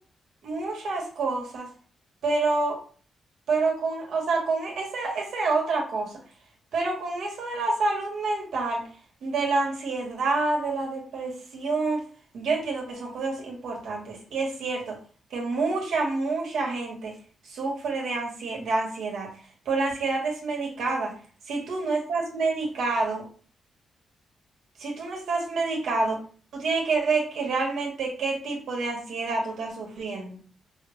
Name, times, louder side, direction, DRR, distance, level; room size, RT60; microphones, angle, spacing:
voice 1, 0.4-1.7 2.2-2.8 3.5-6.2 6.7-8.9 9.2-12.0 12.3-15.0 15.3-17.1 17.4-19.3 19.6-21.1 21.5-23.2 24.8-26.2 26.5-30.4, right 3 dB, 80° right, 0 dB, 1.4 m, -28 dB
5.5 x 2.1 x 3.1 m, 0.41 s
cardioid pair, 110°, 0 cm